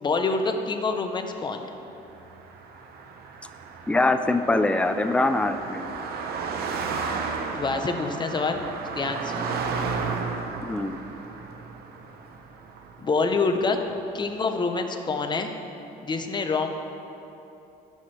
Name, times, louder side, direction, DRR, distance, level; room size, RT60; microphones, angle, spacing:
voice 1, 0.0-1.6 7.5-8.6 8.9-9.6 13.0-13.8 14.1-15.5 16.0-16.7, left 4 dB, 25° left, 5 dB, 0.8 m, -26 dB
Car passing by, 2.1-13.6, right 4 dB, 70° right, 0.8 m, -33 dB
voice 2, 3.9-5.9 10.7-11.0, left 2 dB, 5° left, 9 dB, 0.4 m, -23 dB
16.0 x 6.0 x 3.3 m, 3.0 s
cardioid pair, 110°, 17 cm